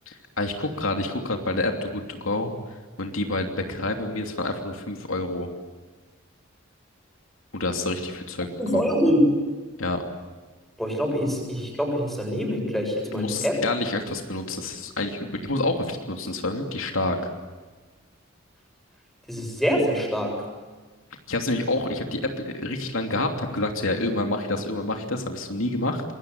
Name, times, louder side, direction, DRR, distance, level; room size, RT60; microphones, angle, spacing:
voice 1, 0.1-2.5 3.0-5.5 7.5-8.5 8.7-8.9 9.8-10.0 13.1-17.3 21.3-26.0, left 2 dB, 80° left, 4 dB, 3.0 m, -28 dB
voice 2, 8.6-9.2 10.8-13.6 19.3-20.3, equal, ahead, 2 dB, 7.3 m, -25 dB
26.5 x 22.0 x 9.7 m, 1.3 s
head